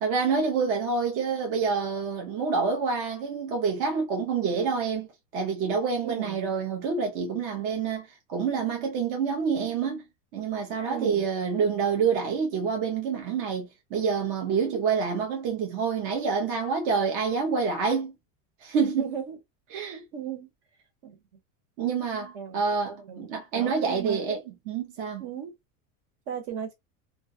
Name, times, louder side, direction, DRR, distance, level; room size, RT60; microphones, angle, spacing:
voice 1, 0.0-5.1 5.3-10.0 10.3-18.1 18.6-19.1 19.7-20.0 21.8-24.4 24.7-25.2, right 5 dB, 35° right, 0.4 m, -27 dB
voice 2, 6.0-6.4 10.9-11.3 19.0-19.4 19.7-20.5 21.0-21.2 22.3-22.6 22.9-23.3 23.5-24.4 25.2-25.5 26.3-26.7, right 8 dB, 55° right, 1.0 m, -36 dB
2.3 x 2.1 x 2.5 m
supercardioid pair, 165°, 42 cm